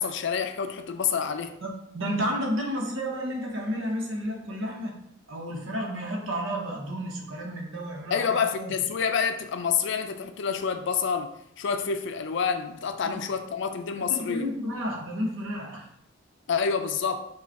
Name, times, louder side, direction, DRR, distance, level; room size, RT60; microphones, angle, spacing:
voice 1, 0.0-1.5 8.1-11.3 11.6-14.5 16.5-17.3, left 6 dB, 65° left, 0.4 m, -28 dB
voice 2, 1.6-4.9 5.3-8.7 13.0-13.2 13.9-15.9, equal, 75° right, 0.9 m, -31 dB
4.8 x 2.4 x 4.6 m
head